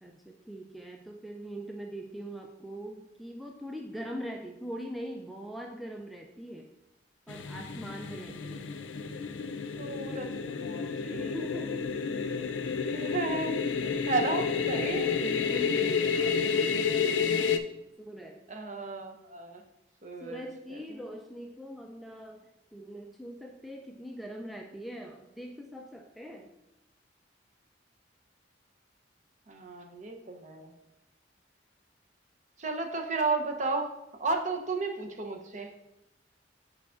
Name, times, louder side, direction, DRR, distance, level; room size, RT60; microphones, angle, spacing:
voice 1, 0.0-6.7 7.3-8.7 11.0-11.9 12.8-13.1 13.8-14.1 15.2-17.5 18.0-18.4 20.2-26.5, equal, ahead, 1 dB, 0.3 m, -42 dB
sound 1, 7.3-17.6, left 5 dB, 90° left, 0.5 m, -30 dB
voice 2, 9.8-11.4 12.9-13.6 14.1-15.1 18.5-19.6 20.0-20.4 20.7-21.0 29.5-30.7 32.6-33.9 34.2-35.8, right 3 dB, 40° right, 3 dB, 0.7 m, -33 dB
8.2 x 4.7 x 2.5 m, 0.91 s
head